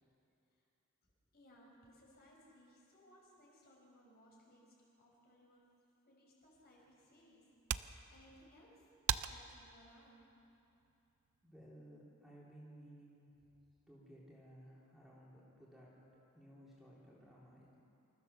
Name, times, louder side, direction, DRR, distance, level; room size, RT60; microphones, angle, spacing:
voice 1, 1.0-5.7 6.1-7.5 8.1-8.9 9.2-10.3, equal, 45° left, -3 dB, 5.3 m, -64 dB
sound 1, 6.5-11.6, right 9 dB, 70° right, 0.6 m, -44 dB
voice 2, 11.4-13.5 13.9-17.8, equal, ahead, -7 dB, 3.6 m, -58 dB
26.5 x 14.5 x 7.0 m, 2.8 s
head